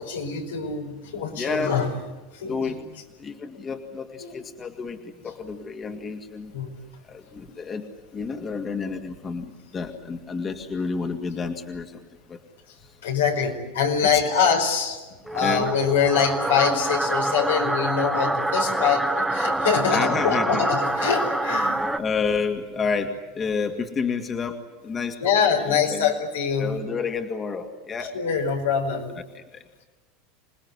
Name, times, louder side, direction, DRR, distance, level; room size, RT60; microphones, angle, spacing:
voice 1, 0.0-1.9 2.3-2.8 4.2-4.4 6.5-6.7 13.0-15.0 15.3-21.8 25.2-26.7 28.1-29.1, left 6 dB, 85° left, 2 dB, 5.1 m, -24 dB
voice 2, 1.3-1.7 2.4-2.8 3.2-5.0 5.2-6.5 7.1-7.9 8.1-11.9 12.3-12.4 15.4-15.7 19.9-20.7 21.9-24.6 24.8-26.1 26.6-28.1 29.3-29.4, left 5 dB, 30° left, 5 dB, 2.4 m, -29 dB
sound 1, 15.3-22.0, right 1 dB, 5° right, 1.6 m, -26 dB
27.5 x 19.5 x 9.8 m, 1.2 s
hypercardioid pair, 90°, 0 cm